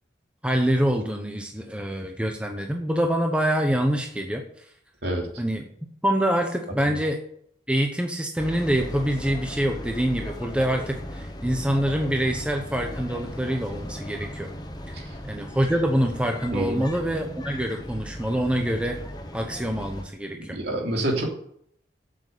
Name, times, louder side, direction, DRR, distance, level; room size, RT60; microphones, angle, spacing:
voice 1, 0.4-4.6 5.4-5.7 6.0-7.2 7.7-14.5 15.2-19.0 19.3-20.6, equal, 5° right, 3 dB, 0.9 m, -25 dB
sound 1, 8.4-20.0, equal, 20° left, 1.0 m, -37 dB
voice 2, 16.5-16.8 20.4-21.2, right 1 dB, 60° right, 0 dB, 3.2 m, -27 dB
8.4 x 7.6 x 8.3 m, 0.68 s
head